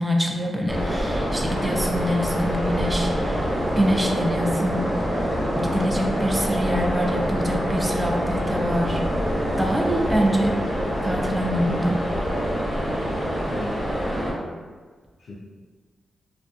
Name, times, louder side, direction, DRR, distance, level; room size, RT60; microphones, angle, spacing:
voice 1, 0.0-5.3 5.5-9.0 9.6-10.6 11.0-12.0, equal, 15° right, 1 dB, 0.4 m, -25 dB
sound 1, 0.7-14.3, equal, 5° left, 1.0 m, -25 dB
voice 2, 13.2-14.5 15.2-15.3, left 1 dB, 70° left, -7 dB, 0.4 m, -37 dB
2.4 x 2.2 x 2.4 m, 1.5 s
cardioid pair, 60°, 0 cm